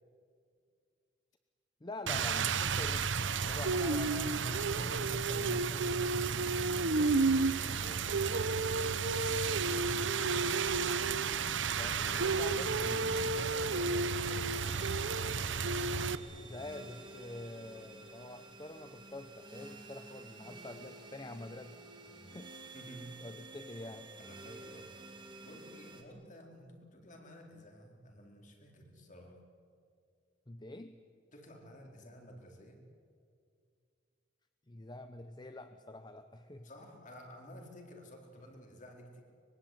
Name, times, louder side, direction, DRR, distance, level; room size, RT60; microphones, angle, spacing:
voice 1, 1.8-3.2 3.5-5.9 11.7-13.4 16.4-21.8 22.3-22.5 23.2-24.1 30.5-31.0 34.7-36.7, left 2 dB, 25° left, 8 dB, 0.9 m, -46 dB
Rain, 2.1-16.2, right 4 dB, 85° right, 0.9 m, -31 dB
voice 2, 6.9-10.1 13.2-14.7 22.0-22.3 22.7-23.1 24.2-25.0 25.4-29.4 31.3-32.8 36.6-39.2, equal, 45° left, 2 dB, 4.4 m, -52 dB
sound 1, 12.0-26.0, right 2 dB, 25° right, 3.1 m, -51 dB
24.5 x 22.0 x 9.3 m, 2.3 s
head